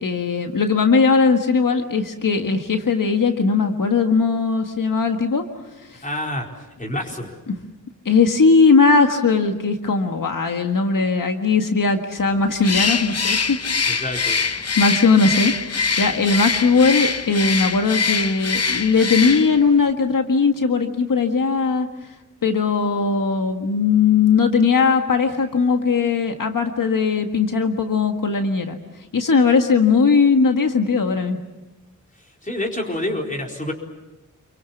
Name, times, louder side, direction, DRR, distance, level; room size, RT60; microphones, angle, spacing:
voice 1, 0.0-5.4 5.9-6.0 8.0-13.6 14.7-21.9 22.4-28.8 29.1-31.4, left 4 dB, 90° left, 5 dB, 1.7 m, -19 dB
voice 2, 6.0-6.5 6.8-7.4 13.9-14.4 32.4-33.7, left 1 dB, 25° left, 0 dB, 4.4 m, -27 dB
Bird, 12.6-19.7, left 5 dB, 50° left, 1.0 m, -23 dB
28.5 x 23.5 x 7.2 m, 1.1 s
wide cardioid pair, 100°, 32 cm